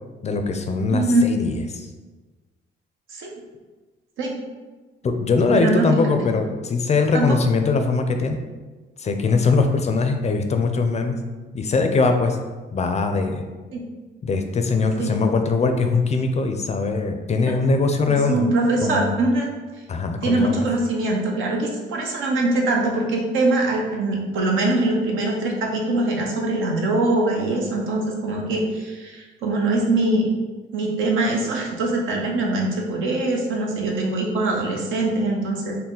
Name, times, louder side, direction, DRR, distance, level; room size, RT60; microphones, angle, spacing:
voice 1, 0.2-1.9 5.0-8.4 9.0-11.2 11.5-12.4 12.7-13.4 14.2-18.5 18.8-19.1 19.9-20.7, left 4 dB, 35° left, 6 dB, 0.4 m, -21 dB
voice 2, 0.9-1.3 3.1-3.3 4.2-4.3 5.5-6.1 7.1-7.4 13.7-13.8 15.0-15.1 18.1-19.5 20.2-30.3 30.7-35.8, right 2 dB, 80° right, 0 dB, 0.8 m, -22 dB
4.1 x 2.1 x 3.7 m, 1.3 s
cardioid pair, 90°, 20 cm